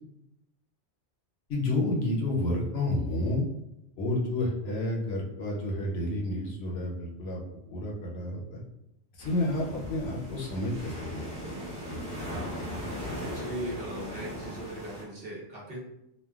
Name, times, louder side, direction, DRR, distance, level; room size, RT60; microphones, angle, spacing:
voice 1, 1.5-3.4 4.0-7.4 7.7-8.6 9.1-11.5 11.9-12.0, left 1 dB, 65° left, -2 dB, 0.9 m, -30 dB
sound 1, 9.2-15.0, equal, 5° left, 0.9 m, -38 dB
voice 2, 12.8-15.8, right 1 dB, 55° right, -6 dB, 1.0 m, -39 dB
3.1 x 2.2 x 2.3 m, 0.85 s
omnidirectional pair, 1.2 m